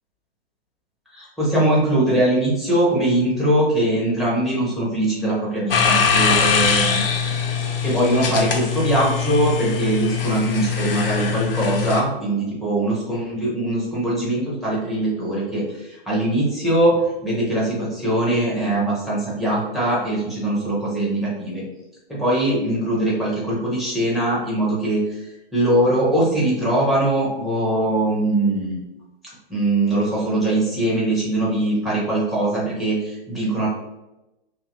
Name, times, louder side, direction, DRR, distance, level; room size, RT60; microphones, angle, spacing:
voice 1, 1.1-7.0 7.8-17.0 17.2-21.6 22.1-25.0 25.5-28.8 29.5-33.7, right 1 dB, ahead, -6 dB, 1.0 m, -21 dB
sound 1, 5.7-12.0, left 6 dB, 65° left, 0.6 m, -22 dB
2.8 x 2.6 x 2.6 m, 0.96 s
figure-of-eight pair, 110°, 30 cm